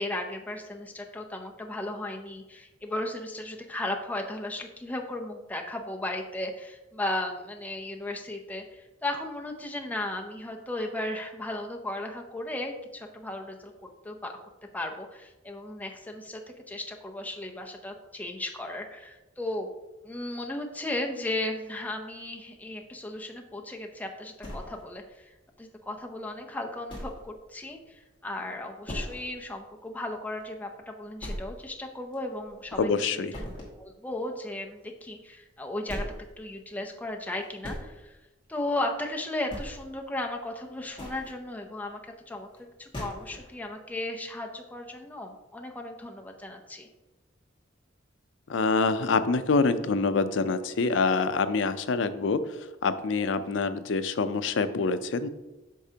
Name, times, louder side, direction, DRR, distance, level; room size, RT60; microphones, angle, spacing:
voice 1, 0.0-13.7 14.0-14.4 14.7-16.4 16.7-19.7 20.0-33.4 33.8-38.2 38.5-42.0 42.3-42.5 42.8-46.9, left 1 dB, 10° left, 2 dB, 0.6 m, -35 dB
sound 1, 24.4-25.2 25.6-25.7 26.2-26.3 26.9-27.3 27.6-27.7 28.1-28.2 28.9-29.4 29.8-29.9 30.4-30.5 31.2-31.8 32.1-32.9 33.3-33.8 35.2-35.3 35.8-36.3 37.2-37.9 38.9-39.1 39.4-40.0 40.7-41.3 42.5-42.6 42.9-43.5, equal, 25° left, 2.0 m, -39 dB
voice 2, 32.8-33.3 48.5-52.4 52.8-55.3, left 4 dB, 80° left, 11 dB, 0.5 m, -26 dB
8.4 x 5.9 x 2.8 m, 1.1 s
head